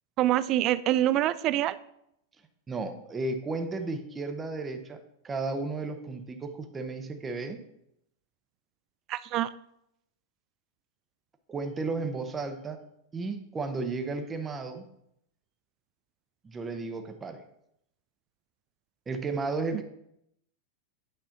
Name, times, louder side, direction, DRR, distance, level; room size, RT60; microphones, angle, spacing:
voice 1, 0.2-1.8 9.1-9.5, right 13 dB, 45° right, 15 dB, 0.3 m, -25 dB
voice 2, 2.7-7.6 11.5-12.8 13.1-14.8 16.4-17.4 19.1-19.8, right 3 dB, 20° right, 6 dB, 0.9 m, -34 dB
8.8 x 5.6 x 3.9 m, 0.78 s
hypercardioid pair, 105°, 0 cm